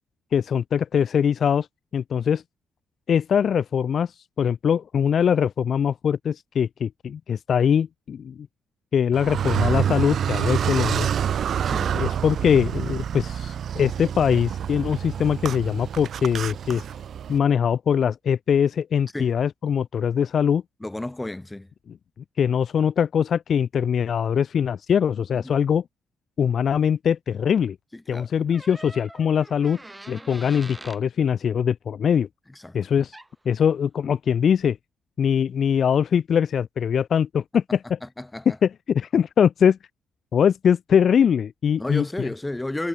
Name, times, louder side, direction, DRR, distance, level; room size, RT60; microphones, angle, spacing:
voice 1, 0.3-1.7 1.9-2.4 3.1-8.4 8.9-11.1 11.9-16.9 17.3-20.6 22.4-25.8 26.4-27.8 28.1-29.8 30.1-32.3 32.7-33.2 33.5-34.8 35.2-38.0 38.6-39.8 40.3-42.3, left 8 dB, 55° left, 0.4 m, -22 dB
Car, 9.1-17.4, right 9 dB, 60° right, 0.5 m, -27 dB
voice 2, 20.8-21.7 25.3-25.5 27.9-28.3 32.5-32.8 38.0-38.6 41.8-42.9, left 1 dB, 10° left, 7.5 m, -32 dB
sound 1, 28.5-31.0 33.1-33.3, right 1 dB, 10° right, 6.1 m, -43 dB
cardioid pair, 90°, 0 cm